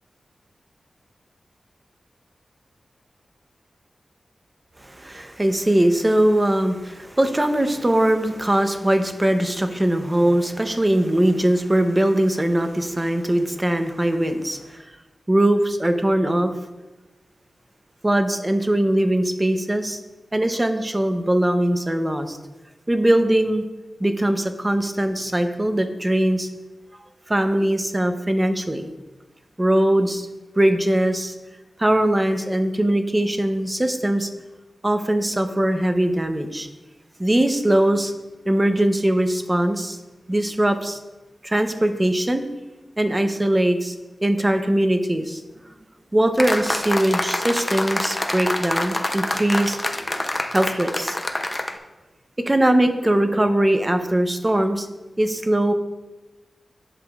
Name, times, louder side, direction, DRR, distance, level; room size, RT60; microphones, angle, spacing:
voice 1, 4.8-14.8 15.3-16.5 18.0-20.0 20.3-22.4 22.9-23.6 24.0-26.5 27.3-28.8 29.6-30.3 30.6-31.3 31.8-34.3 34.8-36.7 37.2-38.1 38.5-40.0 40.3-41.0 41.4-42.4 43.0-43.9 44.2-45.4 46.1-50.3 50.5-51.2 52.4-54.9 55.2-55.7, right 1 dB, 20° right, 7 dB, 0.7 m, -21 dB
sound 1, 46.4-51.8, left 1 dB, 20° left, 0.6 m, -26 dB
11.0 x 7.1 x 2.4 m, 1.1 s
wide cardioid pair, 95°, 0 cm